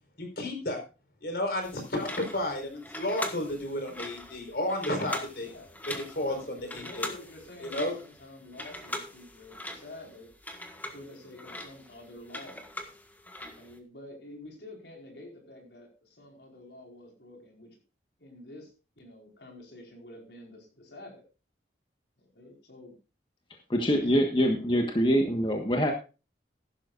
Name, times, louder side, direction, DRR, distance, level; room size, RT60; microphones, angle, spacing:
voice 1, 0.2-0.8 1.2-5.5 6.1-7.1 7.6-8.0, left 1 dB, 60° left, 5 dB, 4.7 m, -32 dB
sound 1, 1.6-13.7, left 1 dB, 10° left, 1.6 m, -41 dB
voice 2, 5.4-10.3 10.9-12.7 13.4-17.8 18.2-18.7 19.0-21.2 22.2-22.9 23.9-24.2, left 1 dB, 75° left, 1 dB, 4.8 m, -48 dB
voice 3, 23.7-25.9, equal, 30° left, 3 dB, 1.4 m, -24 dB
15.5 x 12.0 x 2.6 m, 0.32 s
head